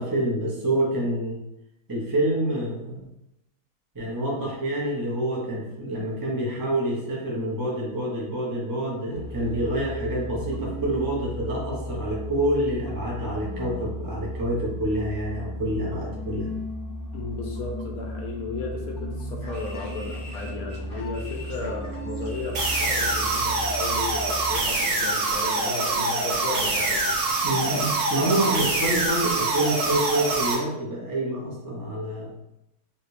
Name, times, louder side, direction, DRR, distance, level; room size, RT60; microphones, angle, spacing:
voice 1, 0.0-1.4 1.9-3.1 3.9-16.5 27.4-32.3, right 1 dB, 30° right, -4 dB, 0.4 m, -27 dB
sound 1, 9.1-24.6, equal, 55° left, 1.1 m, -35 dB
voice 2, 17.1-27.1, left 3 dB, 75° left, 0 dB, 1.2 m, -34 dB
sound 2, 19.4-24.3, left 1 dB, 35° left, 1.7 m, -45 dB
sound 3, 22.5-30.5, right 2 dB, 75° right, 1.3 m, -25 dB
3.2 x 2.8 x 3.1 m, 0.87 s
omnidirectional pair, 1.7 m